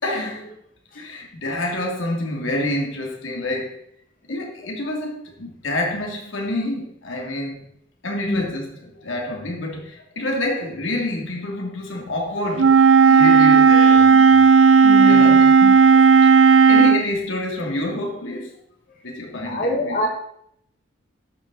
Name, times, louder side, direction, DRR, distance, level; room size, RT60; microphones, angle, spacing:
voice 1, 0.0-0.5 0.9-3.8 4.3-7.6 8.0-14.4 15.0-16.2 16.6-18.5 19.0-20.1, left 1 dB, 80° left, 2.7 m, -28 dB
Wind instrument woodwind instrument, 12.6-17.0, right 5 dB, 80° right, 0.6 m, -12 dB
voice 2, 14.8-15.7 19.4-20.1, left 1 dB, 45° left, 1.7 m, -25 dB
11.5 x 7.9 x 4.1 m
head